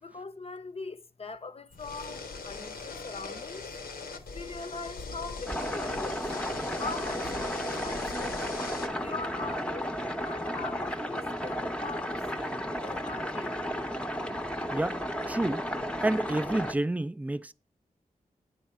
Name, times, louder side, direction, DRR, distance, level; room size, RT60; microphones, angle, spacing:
voice 1, 0.0-3.7 4.3-6.2 6.8-8.4 8.9-10.0 10.2-13.6, left 4 dB, 40° left, 0.6 m, -41 dB
sound 1, 1.7-8.9, left 4 dB, 90° left, 0.8 m, -40 dB
sound 2, 5.5-16.7, equal, 5° left, 0.8 m, -33 dB
voice 2, 14.7-15.0 15.3-15.7 16.0-17.5, right 1 dB, 10° right, 0.4 m, -29 dB
9.4 x 3.5 x 4.4 m
cardioid pair, 40°, 15 cm